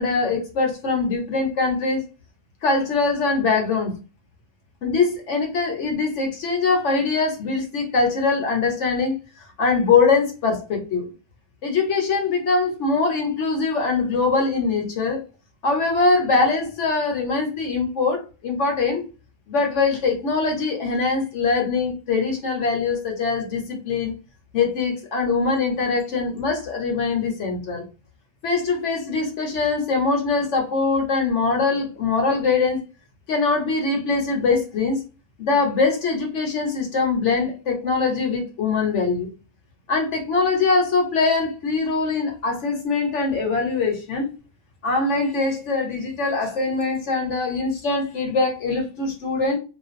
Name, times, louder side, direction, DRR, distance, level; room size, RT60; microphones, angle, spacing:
voice 1, 0.0-2.0 2.6-4.0 4.8-9.2 9.6-11.1 11.6-15.2 15.6-19.0 19.5-24.2 24.5-27.8 28.4-32.8 33.3-35.0 35.4-39.3 39.9-44.3 44.8-49.6, left 4 dB, 60° left, 2 dB, 0.9 m, -22 dB
2.5 x 2.2 x 2.4 m, 0.32 s
omnidirectional pair, 1.6 m